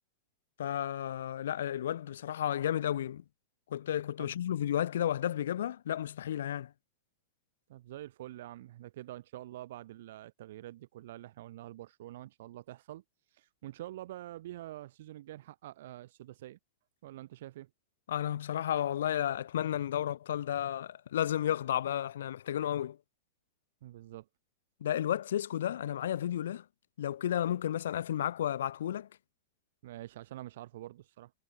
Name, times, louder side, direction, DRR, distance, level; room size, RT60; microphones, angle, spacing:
voice 1, 0.6-3.2 3.7-6.7 18.1-23.0 24.8-26.6 27.0-29.1, left 10 dB, 85° left, 0.7 m, -32 dB
voice 2, 7.7-13.0 13.3-16.6 17.0-17.7 23.8-24.3 29.8-31.3, right 14 dB, 60° right, 0.8 m, -46 dB
supercardioid pair, 170°, 0 cm